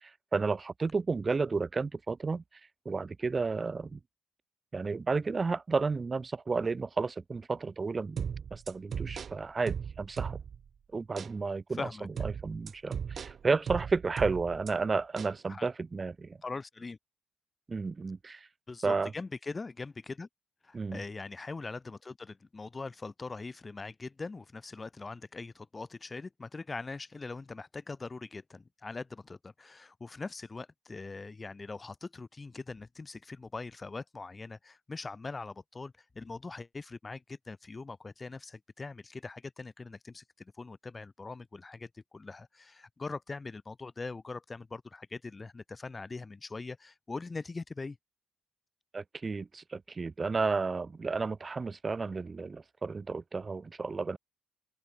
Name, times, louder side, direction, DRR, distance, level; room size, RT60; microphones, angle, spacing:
voice 1, 0.0-2.4 2.9-4.0 4.7-8.2 8.5-10.4 10.9-16.4 17.7-18.5 18.8-19.1 20.7-21.0 48.9-54.2, right 4 dB, 30° right, 2.2 m, -32 dB
sound 1, 8.2-10.7 11.2-11.4 12.2-14.7 15.2-15.4, right 7 dB, 50° right, 2.6 m, -37 dB
voice 2, 11.8-12.1 15.5-15.7 16.4-17.0 18.7-20.3 20.6-48.0, left 3 dB, 25° left, 1.3 m, -42 dB
open air
cardioid pair, 90°, 0 cm